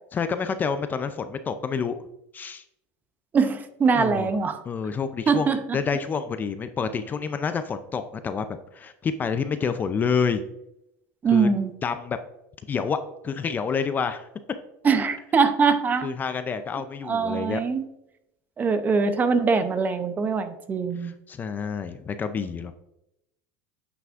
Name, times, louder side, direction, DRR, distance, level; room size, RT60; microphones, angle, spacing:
voice 1, 0.1-2.0 2.3-2.6 3.9-4.3 4.7-10.4 11.3-11.5 11.8-12.2 12.7-13.0 13.2-14.3 16.0-17.6 21.0-22.7, left 6 dB, 25° left, 10 dB, 0.4 m, -28 dB
voice 2, 3.3-4.6 5.3-5.6 11.2-11.7 14.8-16.1 17.0-17.8 18.6-21.1, right 5 dB, 25° right, 10 dB, 0.6 m, -22 dB
9.2 x 5.8 x 2.5 m, 0.84 s
supercardioid pair, 130°, 7 cm